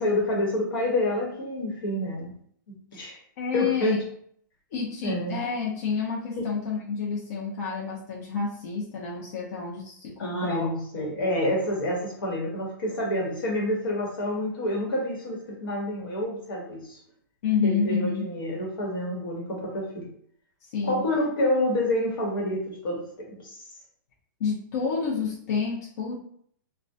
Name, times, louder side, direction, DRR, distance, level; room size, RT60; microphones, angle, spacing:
voice 1, 0.0-2.3 2.9-3.2 3.5-4.0 5.0-5.4 6.4-6.5 10.2-17.0 17.6-20.1 20.8-23.6, left 1 dB, 85° left, -2 dB, 1.1 m, -28 dB
voice 2, 3.4-4.0 4.7-10.7 17.4-18.3 20.7-21.0 24.4-26.1, left 5 dB, 50° left, -4 dB, 0.6 m, -29 dB
2.3 x 2.1 x 2.6 m, 0.62 s
hypercardioid pair, 160°, 11 cm